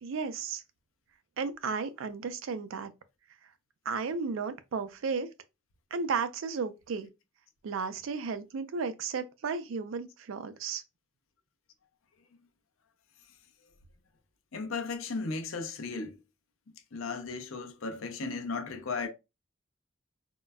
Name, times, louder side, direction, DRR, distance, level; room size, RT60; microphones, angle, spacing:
voice 1, 0.0-0.6 1.4-2.9 3.9-5.3 5.9-7.1 7.6-10.8, right 5 dB, 75° right, 0.4 m, -34 dB
voice 2, 14.5-16.2 16.9-19.1, left 4 dB, 85° left, 0.5 m, -35 dB
3.7 x 2.1 x 2.2 m
head